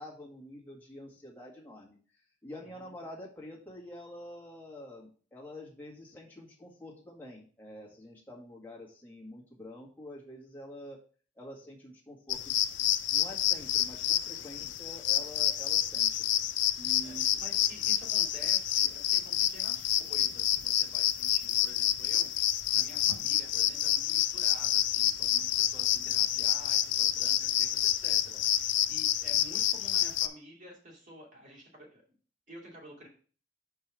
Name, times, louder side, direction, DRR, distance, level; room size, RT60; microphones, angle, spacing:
voice 1, 0.0-2.0 2.4-11.0 11.4-16.2 16.8-17.3, left 1 dB, 10° left, -3 dB, 1.9 m, -47 dB
sound 1, 12.3-30.3, left 12 dB, 80° left, 0.5 m, -28 dB
voice 2, 14.4-14.7 17.0-32.0 32.5-33.1, equal, 45° right, -2 dB, 2.8 m, -51 dB
5.3 x 4.8 x 6.1 m, 0.41 s
head